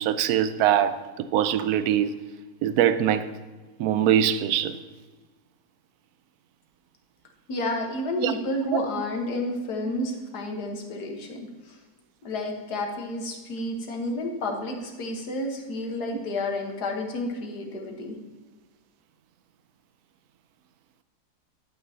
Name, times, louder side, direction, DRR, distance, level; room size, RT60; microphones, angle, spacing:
voice 1, 0.0-2.1 2.6-3.3 3.8-4.8 8.2-8.3 8.6-8.8, right 10 dB, 75° right, 1.1 m, -23 dB
voice 2, 7.5-11.8 12.2-18.1, left 1 dB, 80° left, 1.8 m, -30 dB
11.0 x 8.9 x 2.8 m
omnidirectional pair, 1.7 m